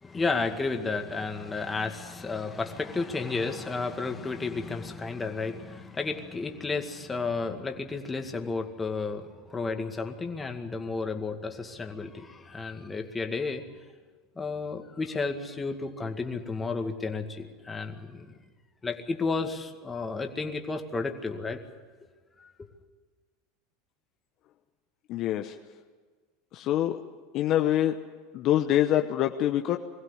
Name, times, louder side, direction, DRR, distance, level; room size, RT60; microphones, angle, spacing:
voice 1, 0.0-13.6 14.4-18.3 18.8-21.6 22.4-22.7, left 4 dB, 15° left, 5 dB, 2.1 m, -32 dB
voice 2, 25.1-25.5 26.5-27.0 27.3-28.0 28.3-29.8, left 12 dB, 50° left, 5 dB, 1.0 m, -25 dB
21.5 x 16.0 x 9.8 m, 1.4 s
hypercardioid pair, 100°, 0 cm